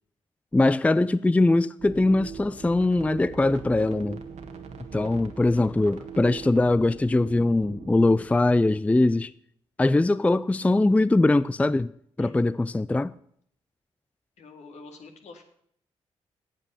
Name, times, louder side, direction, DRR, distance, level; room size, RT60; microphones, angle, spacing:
voice 1, 0.5-4.2 4.9-9.3 9.8-11.9 12.2-13.1, left 2 dB, 10° left, 0.4 m, -22 dB
sound 1, 1.8-8.3, right 6 dB, 70° right, 1.6 m, -41 dB
voice 2, 14.4-15.4, left 3 dB, 70° left, 2.1 m, -46 dB
8.9 x 8.2 x 9.0 m
supercardioid pair, 55°, 12 cm